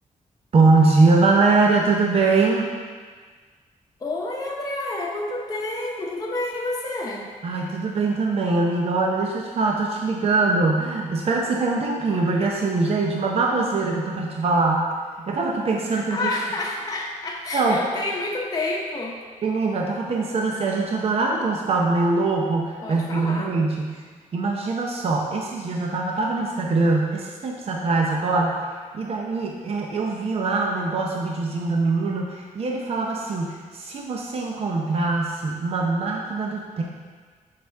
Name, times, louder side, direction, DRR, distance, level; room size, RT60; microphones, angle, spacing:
voice 1, 0.5-2.7 7.4-14.9 15.2-16.3 17.5-17.8 19.4-24.0 24.3-36.8, right 3 dB, 50° right, 0 dB, 0.7 m, -22 dB
voice 2, 4.0-7.3 15.9-19.2 22.8-23.5, left 2 dB, 30° left, -2 dB, 0.8 m, -29 dB
6.7 x 5.0 x 3.5 m, 1.5 s
cardioid pair, 115°, 13 cm